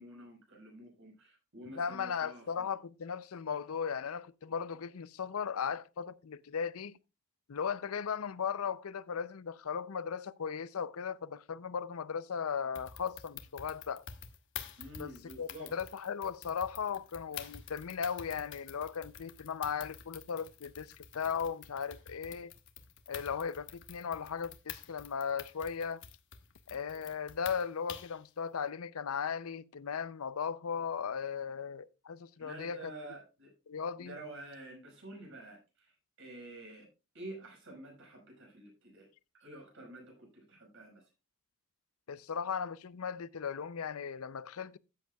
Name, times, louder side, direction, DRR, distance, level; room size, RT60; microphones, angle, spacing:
voice 1, 0.0-2.7 14.8-15.7 32.4-33.5 34.0-35.9 36.2-36.9 37.1-39.1 39.4-41.1, right 1 dB, 60° right, 6.2 m, -49 dB
voice 2, 1.8-6.9 7.5-14.0 15.0-15.1 15.4-22.5 23.1-26.0 26.7-32.8 33.7-34.1 42.1-44.8, left 6 dB, 75° left, 0.5 m, -37 dB
sound 1, 12.8-28.2, left 8 dB, 60° left, 1.2 m, -49 dB
13.5 x 9.1 x 2.3 m
head